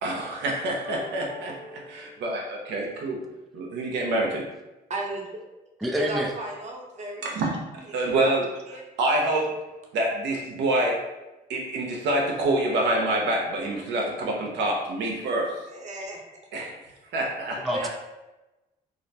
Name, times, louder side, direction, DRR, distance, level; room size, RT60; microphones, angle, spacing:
voice 1, 0.0-3.2 3.5-4.4 7.2-8.5 9.0-9.5 9.9-11.0 11.5-15.5 16.5-16.7 17.1-17.7, right 1 dB, 80° right, -1 dB, 0.6 m, -26 dB
voice 2, 4.9-5.3 6.0-7.3 7.8-7.9 8.2-8.3 8.7-8.8 15.7-16.2 17.7-17.9, right 1 dB, 40° right, -1 dB, 0.7 m, -34 dB
voice 3, 5.8-6.3 17.6-17.9, equal, ahead, 1 dB, 0.3 m, -26 dB
2.4 x 2.1 x 2.7 m, 1.0 s
supercardioid pair, 65°, 18 cm